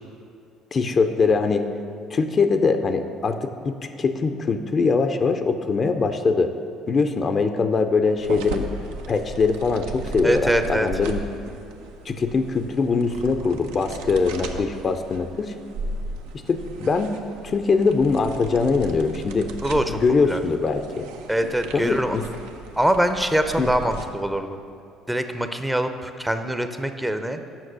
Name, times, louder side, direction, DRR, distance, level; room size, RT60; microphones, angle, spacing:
voice 1, 0.7-1.6 2.1-6.5 6.9-8.7 9.1-11.2 12.1-15.5 16.5-17.1 17.4-19.5 20.0-21.1 21.7-22.2 23.6-23.7, left 4 dB, 40° left, 8 dB, 0.5 m, -22 dB
sound 1, 8.2-24.0, right 3 dB, 75° right, 0.6 m, -36 dB
voice 2, 10.2-10.9 19.6-20.0 20.2-20.4 21.3-22.2 22.8-24.6 25.1-27.4, right 1 dB, 5° right, 8 dB, 0.6 m, -23 dB
7.4 x 5.9 x 6.3 m, 2.5 s
hypercardioid pair, 55°, 0 cm